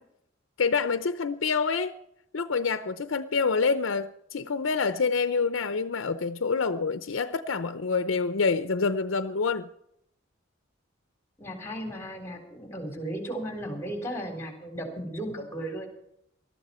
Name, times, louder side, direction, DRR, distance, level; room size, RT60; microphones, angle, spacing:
voice 1, 0.6-1.9 2.3-9.7, left 4 dB, 80° left, 10 dB, 0.7 m, -27 dB
voice 2, 11.4-15.9, right 1 dB, 15° left, 4 dB, 3.8 m, -35 dB
19.5 x 13.0 x 4.3 m, 0.76 s
head